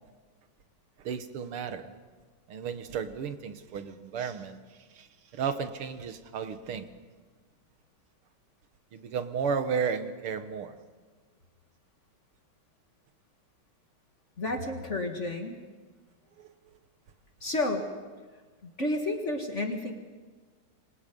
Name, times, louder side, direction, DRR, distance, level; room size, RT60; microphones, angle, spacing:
voice 1, 1.0-1.9 2.5-4.6 5.0-5.1 5.3-6.9 8.9-10.8 16.4-16.5, right 6 dB, 90° right, 9 dB, 2.2 m, -33 dB
voice 2, 14.4-15.6 17.4-17.9 18.6-19.9, left 2 dB, 35° left, 3 dB, 2.1 m, -31 dB
27.5 x 25.0 x 5.3 m, 1.4 s
omnidirectional pair, 2.3 m